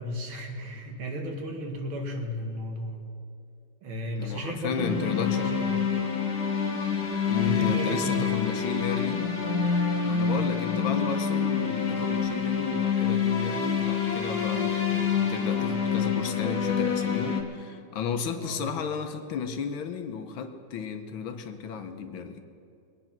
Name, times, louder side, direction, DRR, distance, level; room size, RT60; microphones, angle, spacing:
voice 1, 0.0-3.0 3.8-5.8 7.4-8.5 18.3-18.6, equal, 75° right, 2 dB, 2.5 m, -35 dB
voice 2, 4.2-5.5 7.3-9.3 10.0-22.4, left 6 dB, 75° left, 7 dB, 1.7 m, -33 dB
sound 1, 4.7-17.4, left 6 dB, 55° left, 1.8 m, -27 dB
21.5 x 9.1 x 6.0 m, 2.5 s
omnidirectional pair, 2.3 m